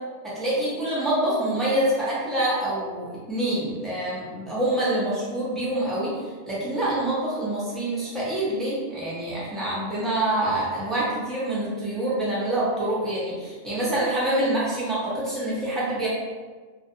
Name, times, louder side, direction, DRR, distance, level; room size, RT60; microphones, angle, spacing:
voice 1, 0.2-6.2 6.5-16.1, right 1 dB, ahead, -9 dB, 0.6 m, -26 dB
2.5 x 2.4 x 2.7 m, 1.4 s
omnidirectional pair, 1.2 m